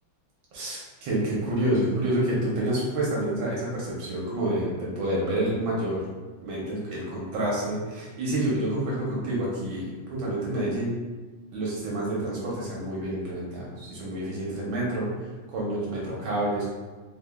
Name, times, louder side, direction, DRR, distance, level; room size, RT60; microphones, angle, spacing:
voice 1, 0.5-6.0 6.4-10.9 11.5-16.7, right 1 dB, 70° right, -5 dB, 1.6 m, -28 dB
3.8 x 3.2 x 2.3 m, 1.3 s
omnidirectional pair, 2.4 m